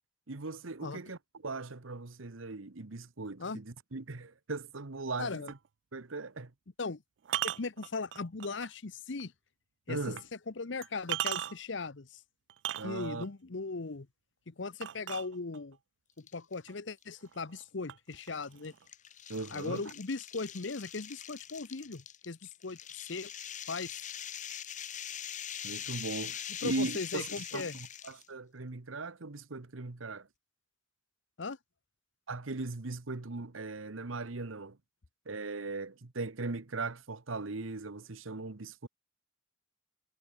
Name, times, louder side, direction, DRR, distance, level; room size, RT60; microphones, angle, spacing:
voice 1, 0.3-5.6 5.9-6.5 9.9-10.2 12.8-13.3 19.3-19.9 25.6-30.3 32.3-34.8 35.3-38.9, right 3 dB, 85° right, 1.2 m, -39 dB
voice 2, 5.2-5.5 6.8-7.0 7.4-9.3 9.9-10.1 10.5-12.2 12.8-14.1 14.5-15.8 16.2-18.7 19.5-23.3 23.7-24.0 26.6-27.8 31.4-31.6, left 4 dB, 65° left, 0.9 m, -38 dB
Large Bottle on Concrete, 5.5-5.7 7.2-8.7 9.2-9.3 10.2-10.3 10.8-11.8 12.5-13.3 14.8-15.8 16.7-16.8 17.2-17.6 17.9-18.8, right 12 dB, 65° right, 0.4 m, -37 dB
sound 1, 16.2-16.6 17.0-17.1 18.1-28.3, left 9 dB, 40° left, 1.9 m, -43 dB
head